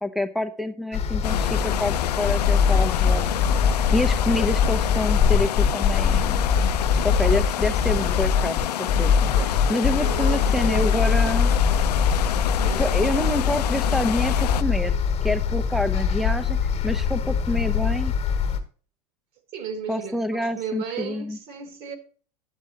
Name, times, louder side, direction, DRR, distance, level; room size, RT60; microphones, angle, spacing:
voice 1, 0.0-3.4 3.9-6.6 7.0-11.5 12.8-16.6 16.8-18.1 19.9-21.4, left 1 dB, ahead, 0.7 m, -27 dB
sound 1, 0.9-18.6, left 6 dB, 30° left, 1.3 m, -22 dB
sound 2, 1.2-14.6, left 12 dB, 70° left, 0.4 m, -29 dB
voice 2, 9.3-11.1 12.6-12.9 19.5-22.0, right 6 dB, 45° right, 1.8 m, -35 dB
9.7 x 7.3 x 2.9 m
figure-of-eight pair, 85°, 21 cm